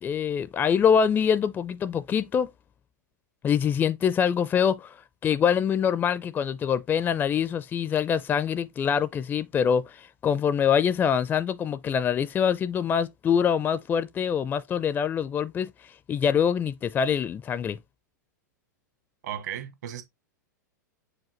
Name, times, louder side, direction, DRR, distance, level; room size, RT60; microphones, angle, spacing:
voice 1, 0.0-2.5 3.4-4.9 5.2-15.7 16.1-17.8, left 7 dB, 20° left, 0.4 m, -24 dB
voice 2, 19.2-20.0, right 10 dB, 60° right, 1.6 m, -35 dB
7.4 x 5.0 x 2.9 m
figure-of-eight pair, 95°, 10 cm